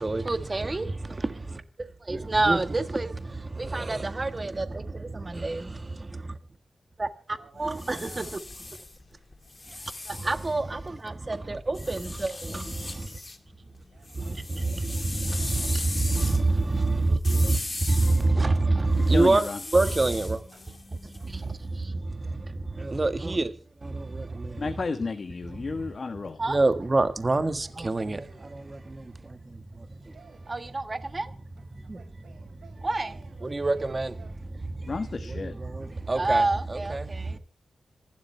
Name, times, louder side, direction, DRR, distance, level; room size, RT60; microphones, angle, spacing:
voice 1, 0.0-6.4 7.0-8.3 10.1-13.2 14.1-20.4 21.2-23.5 23.8-24.8 25.5-25.9 26.4-28.2 28.5-30.1 30.5-32.0 32.8-33.2 33.4-34.1 34.7-37.4, right 2 dB, 25° right, 1.6 m, -27 dB
voice 2, 2.4-2.8 7.1-8.3 9.2-9.3 9.5-10.9 13.1-13.2 13.8-16.0 16.5-16.8 17.9-18.7 20.5-20.6 21.1-21.6 23.2-23.3 24.1-24.5 25.9-26.0 26.8-26.9 27.6-28.7 29.7-30.6 31.6-34.4 37.2-37.4, right 5 dB, 90° right, 7.7 m, -57 dB
sound 1, 7.5-11.1 11.7-13.4 13.7-21.7, left 2 dB, 25° left, 2.1 m, -39 dB
voice 3, 18.9-19.6 24.6-26.4 34.8-35.5, left 4 dB, 45° left, 1.3 m, -32 dB
26.5 x 12.5 x 3.4 m
wide cardioid pair, 115°, 0 cm